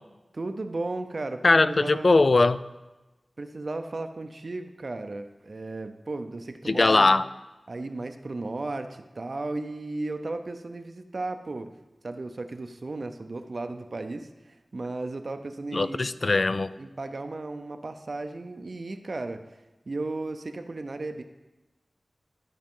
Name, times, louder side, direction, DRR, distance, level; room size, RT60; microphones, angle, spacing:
voice 1, 0.3-2.1 3.4-7.2 7.7-11.7 12.0-16.1 16.8-19.4 19.9-21.2, right 2 dB, 60° right, 8 dB, 0.6 m, -35 dB
voice 2, 1.4-2.6 6.7-7.2 15.7-16.7, left 3 dB, 60° left, 14 dB, 0.3 m, -20 dB
13.0 x 5.0 x 3.7 m, 1.1 s
wide cardioid pair, 60°, 0 cm